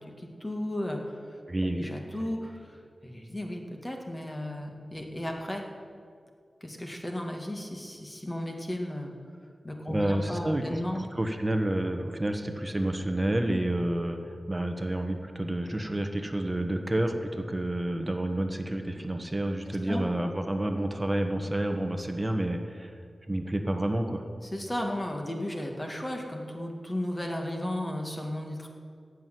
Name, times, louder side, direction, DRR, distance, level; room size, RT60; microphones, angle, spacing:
voice 1, 0.2-1.3 1.8-2.8 3.0-5.6 6.6-9.1 9.6-11.0 19.7-20.0 24.4-28.7, left 1 dB, 20° left, 2 dB, 1.8 m, -34 dB
voice 2, 1.5-1.9 9.9-22.9 23.3-24.2, right 1 dB, 20° right, 5 dB, 1.2 m, -29 dB
15.5 x 6.3 x 9.3 m, 2.2 s
wide cardioid pair, 85°, 0 cm